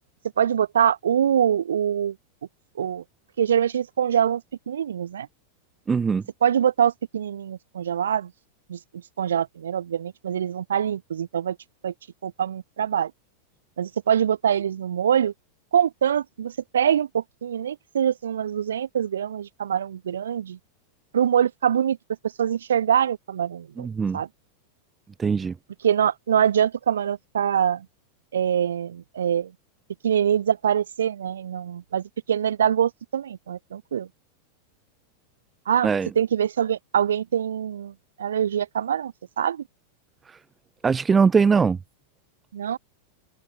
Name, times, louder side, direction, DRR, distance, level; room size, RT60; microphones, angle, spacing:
voice 1, 0.4-2.2 2.8-3.0 3.4-5.3 6.4-8.3 8.7-8.8 9.2-11.6 11.8-11.9 12.2-13.1 13.8-15.3 15.7-20.6 21.1-22.0 22.2-23.9 24.1-24.3 25.8-27.9 28.3-29.5 30.0-34.1 35.7-35.9 36.1-39.6 42.5-42.8, right 9 dB, 65° right, 2.7 m, -24 dB
voice 2, 5.9-6.2 23.8-24.2 25.2-25.5 35.8-36.1 40.3-40.4 40.8-41.8, right 5 dB, 15° right, 0.4 m, -21 dB
open air
figure-of-eight pair, 90°, 0 cm